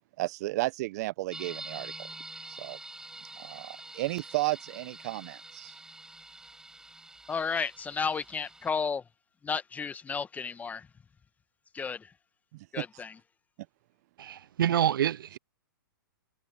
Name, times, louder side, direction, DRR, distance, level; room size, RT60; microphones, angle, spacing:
voice 1, 0.2-2.1 2.5-2.8 3.4-5.8 12.5-12.9, right 19 dB, 45° right, 0.8 m, -33 dB
sound 1, 1.3-8.7, right 2 dB, 5° right, 6.2 m, -46 dB
voice 2, 7.3-9.0 9.4-10.9 11.7-12.1 12.7-13.1, left 5 dB, 15° left, 1.4 m, -32 dB
voice 3, 14.2-15.4, right 10 dB, 70° right, 0.4 m, -27 dB
hypercardioid pair, 120°, 12 cm